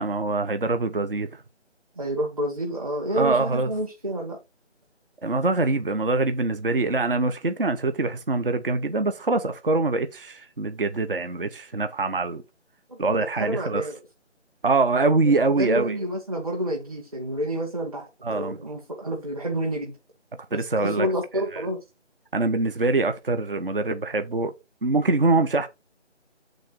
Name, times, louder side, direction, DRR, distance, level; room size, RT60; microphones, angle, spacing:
voice 1, 0.0-1.4 3.2-3.7 5.2-12.4 13.0-13.9 14.6-16.0 18.2-18.6 20.5-21.1 21.5-21.6 22.3-24.5 24.8-25.7, right 3 dB, 50° right, 0.8 m, -24 dB
voice 2, 1.9-4.4 12.9-14.0 15.2-19.9 20.5-21.8, right 1 dB, 30° right, 1.6 m, -29 dB
8.2 x 3.9 x 4.6 m
figure-of-eight pair, 175°, 36 cm